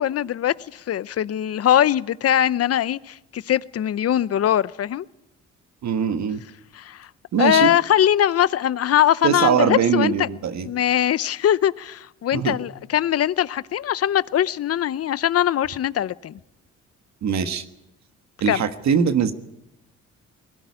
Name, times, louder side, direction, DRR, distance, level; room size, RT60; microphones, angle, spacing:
voice 1, 0.0-5.1 6.7-7.1 7.4-10.3 10.6-16.4 18.5-18.6, left 11 dB, 50° left, 0.7 m, -21 dB
voice 2, 5.8-6.4 7.3-7.7 9.2-10.7 12.3-12.6 17.2-17.6 18.4-19.3, right 7 dB, 65° right, 1.6 m, -21 dB
20.5 x 17.5 x 9.7 m
cardioid pair, 90°, 30 cm